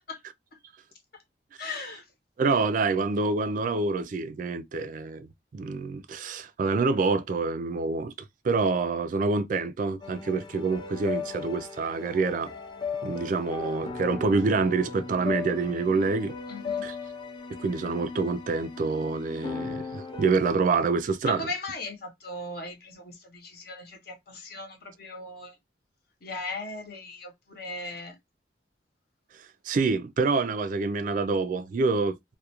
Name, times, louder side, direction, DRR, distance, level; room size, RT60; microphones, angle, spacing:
voice 1, 1.6-2.1 16.5-16.8 21.2-25.5 26.2-28.2, left 2 dB, 60° left, 0.8 m, -38 dB
voice 2, 2.4-8.1 8.4-12.5 13.0-16.3 16.8-16.9 17.6-21.5 29.6-32.2, right 4 dB, 45° right, 0.3 m, -26 dB
sound 1, 10.0-20.3, left 5 dB, 25° left, 0.5 m, -37 dB
2.3 x 2.1 x 2.8 m
head